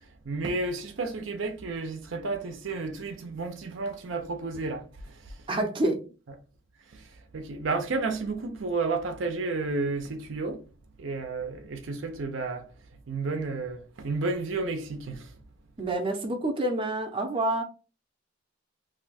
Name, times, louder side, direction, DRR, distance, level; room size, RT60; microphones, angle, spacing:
voice 1, 0.3-5.1 6.9-7.0 7.3-10.6 11.0-12.7 13.1-15.3, right 3 dB, 70° right, 0.5 m, -31 dB
voice 2, 5.5-6.0 15.8-17.6, right 2 dB, 25° right, 0.6 m, -27 dB
2.7 x 2.2 x 4.0 m
head